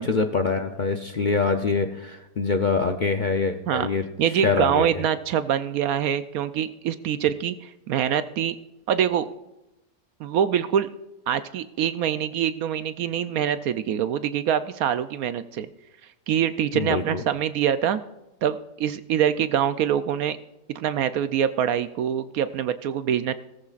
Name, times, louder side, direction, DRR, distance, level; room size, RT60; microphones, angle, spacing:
voice 1, 0.0-4.0 4.4-5.0 16.7-17.2, left 4 dB, 65° left, 6 dB, 0.4 m, -24 dB
voice 2, 4.2-8.6 8.9-9.3 10.2-10.9 11.3-15.7 16.3-18.0 18.4-20.4 20.7-23.3, right 9 dB, 70° right, 12 dB, 1.0 m, -24 dB
18.0 x 14.0 x 2.4 m, 0.94 s
omnidirectional pair, 1.7 m